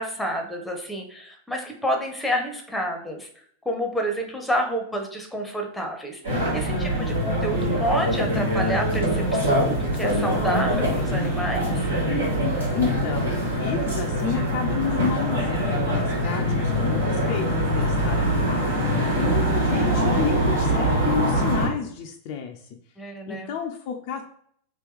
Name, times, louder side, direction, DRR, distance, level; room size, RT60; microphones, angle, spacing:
voice 1, 0.0-3.3 3.6-11.8 23.0-23.5, equal, 5° left, 3 dB, 0.7 m, -29 dB
sound 1, 6.2-21.7, equal, 80° right, 1.4 m, -23 dB
voice 2, 6.7-7.2 12.7-18.7 19.2-22.6 23.3-24.2, left 7 dB, 45° left, 3 dB, 0.4 m, -31 dB
3.0 x 2.9 x 3.4 m, 0.62 s
figure-of-eight pair, 90°, 0 cm